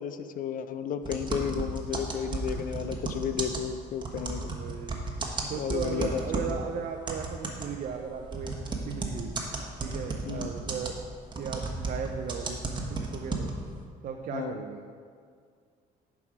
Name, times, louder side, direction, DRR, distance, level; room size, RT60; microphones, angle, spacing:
voice 1, 0.0-4.5 5.4-6.6 10.3-10.5 14.3-14.6, left 8 dB, 55° left, 11 dB, 0.5 m, -33 dB
sound 1, 1.0-6.6 7.1-13.8, right 3 dB, 25° right, 1.2 m, -34 dB
voice 2, 4.2-5.0 5.5-9.3 9.8-11.0 11.4-13.5 14.0-14.8, right 7 dB, 50° right, 3 dB, 0.6 m, -37 dB
11.0 x 4.8 x 4.9 m, 2.1 s
cardioid pair, 110°, 17 cm